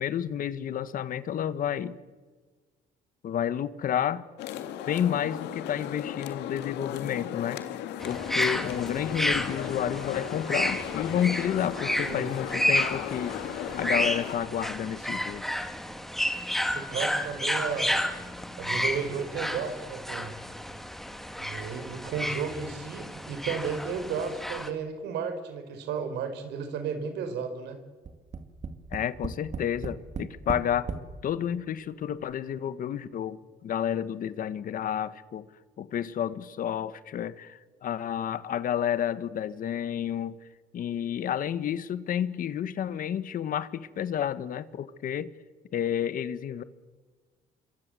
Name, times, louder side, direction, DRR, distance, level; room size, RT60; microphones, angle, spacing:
voice 1, 0.0-2.0 3.2-4.2 4.9-7.6 8.0-13.3 13.8-15.4 28.9-30.9 31.2-35.5 35.8-40.4 40.7-45.3 45.7-46.6, left 9 dB, 55° left, 14 dB, 1.4 m, -30 dB
sound 1, 4.4-14.4, left 10 dB, 85° left, 2.1 m, -36 dB
sound 2, 8.0-24.7, equal, ahead, 2.4 m, -31 dB
voice 2, 16.7-18.1 18.6-20.4 21.4-27.8, right 6 dB, 85° right, 8 dB, 4.5 m, -33 dB
Tap, 28.0-31.1 31.9-32.0 32.3-32.4, right 5 dB, 45° right, 2.5 m, -36 dB
27.0 x 24.0 x 7.8 m, 1.4 s
cardioid pair, 110°, 17 cm